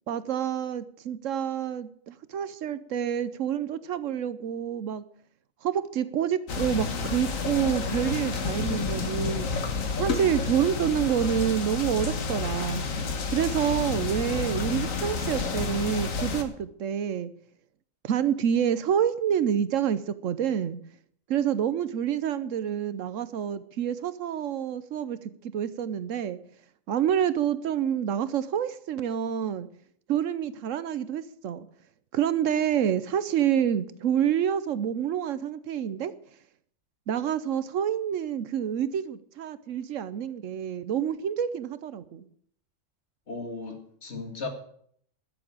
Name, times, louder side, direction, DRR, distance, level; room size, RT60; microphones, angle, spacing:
voice 1, 0.1-5.0 5.6-9.5 10.0-12.8 13.3-17.3 18.0-20.8 21.3-26.4 26.9-29.7 30.1-31.7 32.1-36.1 37.1-42.3, right 9 dB, 75° right, 1.1 m, -28 dB
sound 1, 6.5-16.4, left 4 dB, 75° left, 1.7 m, -30 dB
voice 2, 43.3-44.5, left 3 dB, 55° left, 2.4 m, -36 dB
12.0 x 7.1 x 8.7 m
omnidirectional pair, 1.4 m